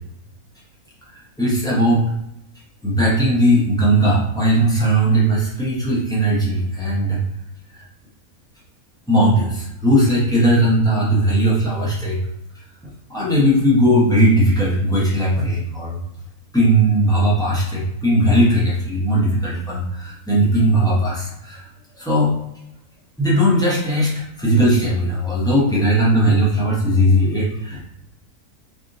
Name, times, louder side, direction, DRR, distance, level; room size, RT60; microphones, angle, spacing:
voice 1, 1.4-2.1 2.8-7.2 9.1-12.2 13.1-15.9 16.5-21.6 22.0-22.3 23.2-27.8, right 1 dB, 5° left, -7 dB, 0.3 m, -18 dB
3.5 x 2.5 x 2.5 m, 0.84 s
omnidirectional pair, 1.6 m